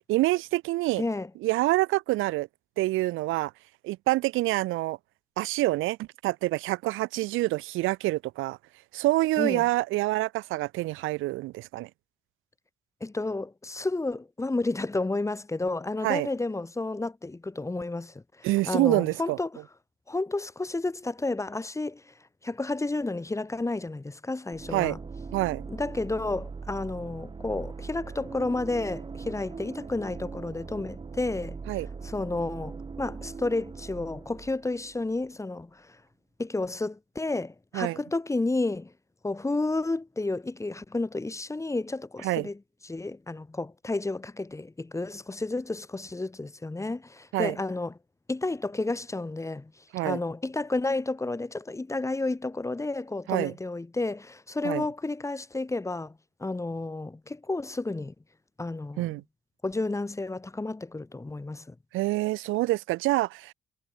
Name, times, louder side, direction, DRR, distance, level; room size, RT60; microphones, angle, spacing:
voice 1, 0.1-1.0 1.4-2.5 2.8-3.5 3.8-5.0 5.4-8.6 8.9-11.9 16.0-16.3 18.4-19.4 24.7-25.0 25.3-25.6 31.7-31.9 37.7-38.0 42.2-42.5 47.3-47.6 49.9-50.2 53.3-53.5 54.6-54.8 59.0-59.2 61.9-63.5, right 19 dB, 90° right, 0.5 m, -26 dB
voice 2, 1.0-1.3 9.4-9.7 13.0-19.6 20.1-22.1 22.4-25.0 25.7-36.0 36.4-38.9 39.2-47.9 48.3-58.1 58.6-59.1 59.6-61.7, left 2 dB, 15° left, 1.2 m, -31 dB
sound 1, 24.5-35.3, right 4 dB, 25° right, 0.8 m, -40 dB
cardioid pair, 90°, 20 cm